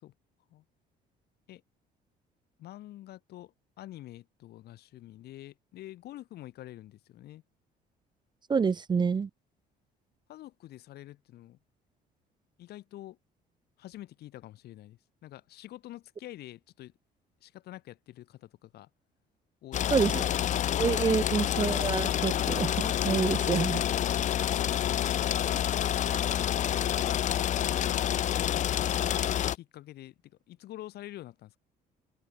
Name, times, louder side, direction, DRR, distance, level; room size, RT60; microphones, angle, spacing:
voice 1, 2.6-7.4 10.3-11.6 12.6-13.2 13.8-16.9 17.4-18.9 19.6-20.5 27.5-29.0 29.5-31.6, left 14 dB, 70° left, 3.5 m, -47 dB
voice 2, 8.5-9.3 19.9-20.2 20.8-23.8, right 5 dB, 25° right, 0.6 m, -27 dB
sound 1, 19.7-29.6, left 10 dB, 45° left, 0.6 m, -28 dB
open air
cardioid pair, 110°, 17 cm